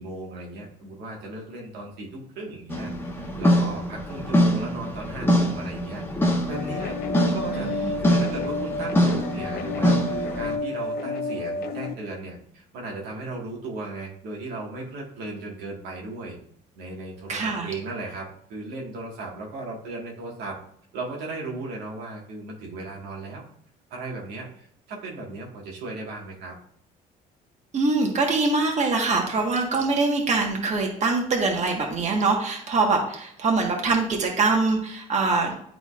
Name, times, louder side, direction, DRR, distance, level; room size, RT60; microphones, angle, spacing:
voice 1, 0.0-6.0 6.4-7.0 7.3-16.4 16.7-20.6 20.9-23.4 23.9-26.5, right 2 dB, 85° right, -2 dB, 1.7 m, -36 dB
sound 1, 2.7-10.6, equal, 15° left, 1.1 m, -24 dB
sound 2, 6.5-11.9, left 3 dB, 65° left, 0.7 m, -31 dB
voice 2, 7.2-7.9 17.3-17.7 27.7-35.6, right 3 dB, 45° right, 0 dB, 1.5 m, -24 dB
10.5 x 3.9 x 2.5 m, 0.67 s
cardioid pair, 110°, 17 cm